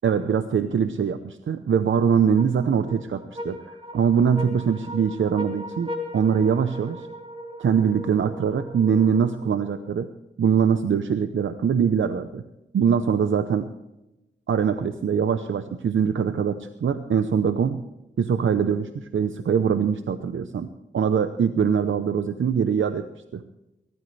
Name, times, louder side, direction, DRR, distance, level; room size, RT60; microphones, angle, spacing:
voice 1, 0.0-7.1 7.6-10.1 10.4-12.4 12.7-13.7 14.5-17.8 18.2-20.7 20.9-23.1 23.3-23.4, right 7 dB, 85° right, 10 dB, 0.8 m, -23 dB
sound 1, 2.4-9.9, left 1 dB, 30° right, 3.5 m, -38 dB
23.0 x 13.5 x 3.3 m, 0.94 s
cardioid pair, 40°, 20 cm